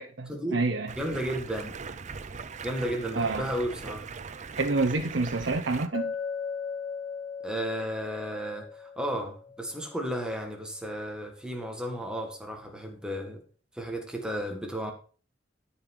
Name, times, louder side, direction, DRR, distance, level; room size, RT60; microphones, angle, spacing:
voice 1, 0.0-0.9 3.2-3.4 4.5-6.1, right 3 dB, 75° right, 1.0 m, -28 dB
Stream, 0.9-5.9, right 5 dB, 40° right, 0.6 m, -40 dB
voice 2, 1.0-1.8 2.6-4.1 7.4-13.4 13.7-14.9, equal, 5° right, 1.8 m, -33 dB
Chink clink, 5.9-9.9, left 6 dB, 65° left, 0.9 m, -37 dB
13.0 x 5.6 x 4.7 m
head